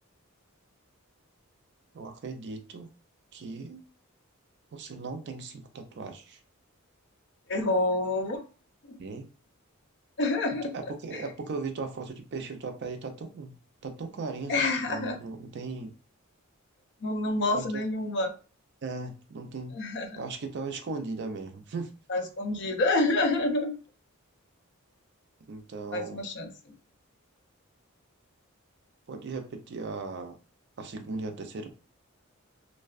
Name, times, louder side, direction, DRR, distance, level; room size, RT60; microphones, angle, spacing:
voice 1, 1.9-2.9 3.3-3.8 4.7-6.4 9.0-9.3 10.7-13.5 13.8-15.9 17.5-17.8 18.8-19.7 20.1-21.9 25.5-26.2 29.1-30.4 30.8-31.7, right 3 dB, 55° right, 6 dB, 0.4 m, -37 dB
voice 2, 7.5-8.4 8.8-9.0 10.2-10.7 11.1-11.2 14.5-15.2 17.0-18.3 19.7-20.2 22.1-23.8 25.9-26.5, left 2 dB, 55° left, 5 dB, 0.5 m, -28 dB
2.5 x 2.2 x 2.3 m, 0.33 s
head